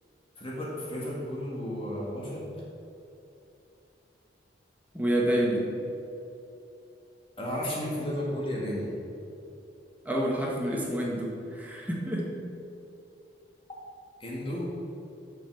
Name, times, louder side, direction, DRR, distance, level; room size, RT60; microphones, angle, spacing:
voice 1, 0.4-2.5 7.4-8.9 14.2-14.7, equal, 30° left, -4 dB, 1.9 m, -33 dB
voice 2, 4.9-5.7 10.0-12.3, right 1 dB, 10° right, -3 dB, 1.5 m, -28 dB
7.4 x 6.0 x 6.8 m, 2.8 s
head